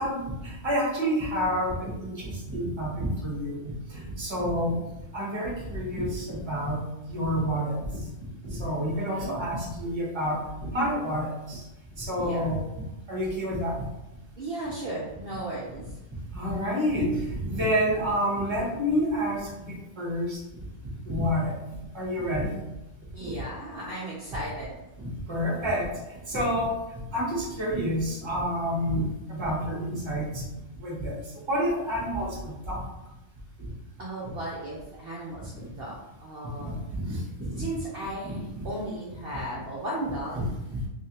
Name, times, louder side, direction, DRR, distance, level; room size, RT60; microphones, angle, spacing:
voice 1, 0.0-4.8 5.1-7.8 8.4-11.6 12.0-12.7 13.1-13.8 16.3-20.4 21.0-21.6 21.9-22.5 25.0-25.9 26.3-26.7 27.1-30.4 30.8-31.1 31.5-32.8 36.5-37.2 37.4-37.6 38.5-38.6 40.3-40.8, equal, 20° right, -4 dB, 1.0 m, -29 dB
voice 2, 8.9-9.6 12.2-12.5 14.3-15.9 23.1-24.9 34.0-35.9 36.2-36.7 37.6-40.4, right 1 dB, 50° right, -5 dB, 0.9 m, -35 dB
3.4 x 3.3 x 2.9 m, 0.95 s
omnidirectional pair, 1.4 m